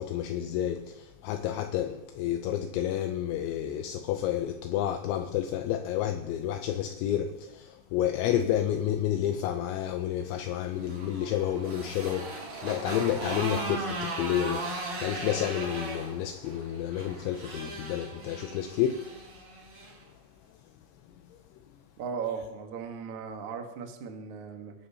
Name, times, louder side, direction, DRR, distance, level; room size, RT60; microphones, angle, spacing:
voice 1, 0.0-12.3 12.6-19.3 20.5-20.6 21.3-21.6, left 11 dB, 80° left, 2.9 m, -30 dB
Motorcycle, 10.6-20.0, right 2 dB, 45° right, 4.9 m, -37 dB
voice 2, 22.0-24.7, right 6 dB, 70° right, 1.8 m, -37 dB
25.0 x 11.5 x 2.8 m
omnidirectional pair, 5.5 m